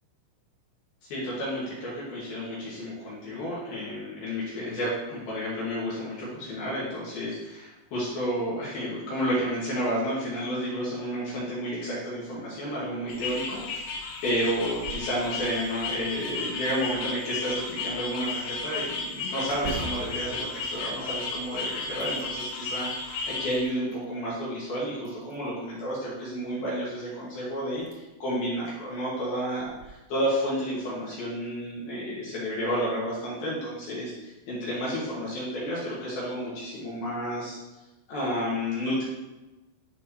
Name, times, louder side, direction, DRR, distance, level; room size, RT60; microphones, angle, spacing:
voice 1, 1.0-37.6 38.1-39.0, equal, 65° left, -7 dB, 2.7 m, -31 dB
sound 1, 13.1-23.6, left 3 dB, 85° left, 3.6 m, -34 dB
sound 2, 14.6-15.2 15.6-15.7 16.3-17.1 19.5-21.5 21.9-22.6 23.2-24.1 25.0-25.7 27.1-27.2 27.8-28.0 28.4-28.5 29.6-29.9, right 4 dB, 85° right, 2.4 m, -42 dB
10.5 x 4.6 x 2.8 m, 1.0 s
omnidirectional pair, 5.8 m